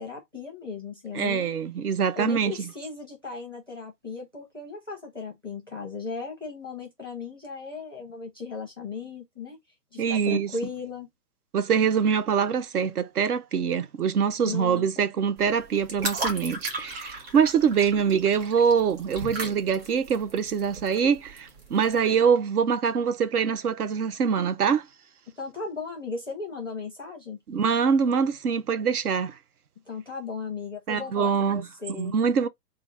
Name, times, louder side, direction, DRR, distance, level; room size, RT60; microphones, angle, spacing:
voice 1, 0.0-1.6 2.1-9.6 9.9-11.1 14.4-15.0 25.4-27.4 29.9-32.2, left 4 dB, 15° left, 0.6 m, -36 dB
voice 2, 1.1-2.6 10.0-10.5 11.5-24.9 27.5-29.4 30.9-32.5, right 6 dB, 65° right, 0.7 m, -24 dB
sound 1, 15.4-22.1, right 2 dB, 35° right, 1.9 m, -36 dB
3.8 x 2.3 x 4.6 m
hypercardioid pair, 175°, 49 cm